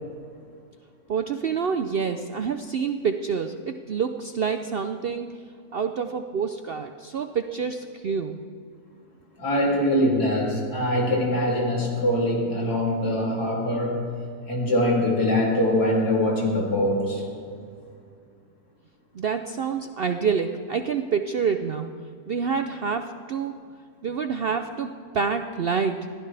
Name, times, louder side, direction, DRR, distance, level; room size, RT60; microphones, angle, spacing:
voice 1, 1.1-5.3 5.7-8.4 19.2-21.9 22.3-23.5 24.0-24.9 25.1-26.0, right 6 dB, 65° right, 7 dB, 0.6 m, -27 dB
voice 2, 9.4-14.0 14.5-17.3, left 1 dB, 85° left, -3 dB, 3.5 m, -23 dB
21.0 x 15.0 x 3.4 m, 2.2 s
omnidirectional pair, 1.6 m